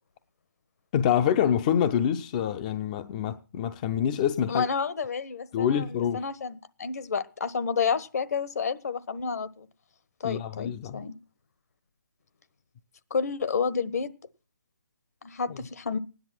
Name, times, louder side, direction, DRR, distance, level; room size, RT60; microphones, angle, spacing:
voice 1, 0.9-4.7 5.5-6.3 10.2-11.0, left 9 dB, 25° left, 0.6 m, -26 dB
voice 2, 4.5-9.7 10.2-11.2 13.1-14.1 15.2-16.0, left 5 dB, 55° left, 1.3 m, -30 dB
16.0 x 10.5 x 6.0 m
figure-of-eight pair, 150°, 10 cm